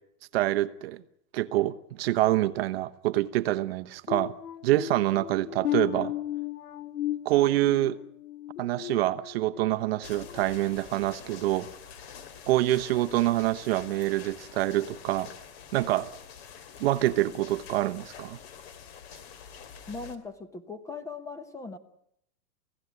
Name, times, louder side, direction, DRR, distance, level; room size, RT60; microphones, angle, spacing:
voice 1, 0.3-1.0 1.3-4.3 4.6-6.1 7.2-8.0 8.6-11.7 12.5-15.3 15.7-16.1 16.8-18.4, right 15 dB, 40° right, 0.9 m, -26 dB
sound 1, 4.1-9.7 10.2-10.4 11.0-11.1, left 14 dB, 75° left, 1.6 m, -35 dB
sound 2, 10.0-20.2, left 7 dB, 40° left, 2.8 m, -46 dB
voice 2, 19.9-21.8, left 4 dB, 5° left, 1.1 m, -39 dB
29.0 x 16.5 x 9.5 m
supercardioid pair, 160°, 45 cm